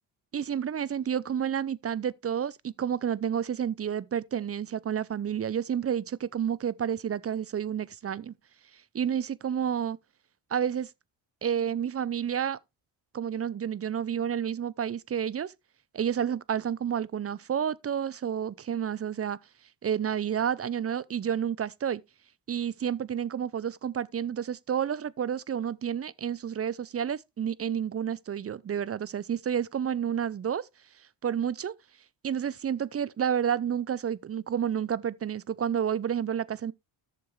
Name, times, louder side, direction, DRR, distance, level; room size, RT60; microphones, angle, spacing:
voice 1, 0.3-8.3 8.9-10.0 10.5-10.9 11.4-12.6 13.1-15.5 15.9-19.4 19.8-22.0 22.5-30.7 31.2-31.7 32.2-36.7, right 8 dB, 30° right, 0.6 m, -30 dB
11.5 x 6.9 x 3.3 m
cardioid pair, 85°, 48 cm